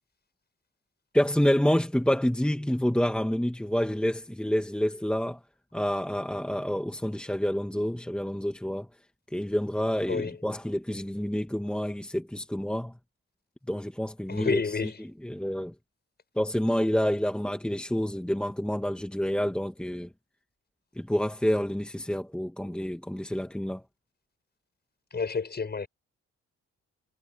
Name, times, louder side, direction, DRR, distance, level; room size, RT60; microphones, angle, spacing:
voice 1, 1.1-5.4 5.7-8.9 9.3-12.9 13.7-15.7 16.4-20.1 21.0-23.8, equal, 5° left, 2.1 m, -28 dB
voice 2, 14.3-15.0 25.1-25.9, left 5 dB, 35° left, 6.7 m, -29 dB
cardioid pair, 90°, 30 cm